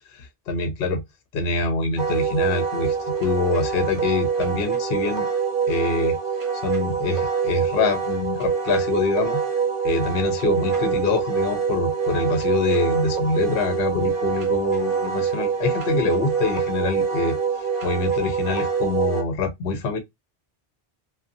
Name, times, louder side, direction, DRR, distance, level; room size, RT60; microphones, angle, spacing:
voice 1, 0.1-1.0 1.3-5.3 5.7-6.2 6.5-9.4 9.8-20.0, left 4 dB, 70° left, 0.8 m, -25 dB
Wind instrument woodwind instrument, 2.0-19.2, right 6 dB, 60° right, 0.7 m, -25 dB
2.5 x 2.2 x 2.5 m
omnidirectional pair, 1.1 m